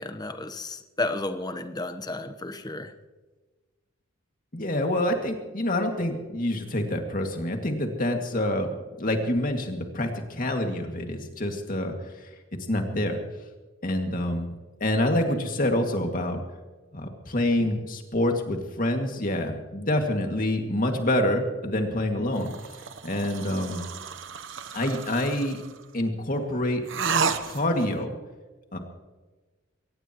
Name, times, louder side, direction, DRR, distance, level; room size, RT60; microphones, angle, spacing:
voice 1, 0.0-2.9, left 2 dB, 20° left, 8 dB, 1.0 m, -32 dB
voice 2, 4.5-12.3 12.7-13.2 13.8-14.5 14.8-16.4 16.9-22.5 23.0-23.8 24.7-25.6 25.9-26.8 27.5-28.2 28.7-28.8, left 1 dB, 40° left, 3 dB, 2.2 m, -27 dB
sound 1, 22.4-25.8 26.9-27.9, right 5 dB, 60° right, 0.9 m, -32 dB
23.0 x 18.0 x 3.0 m, 1.3 s
head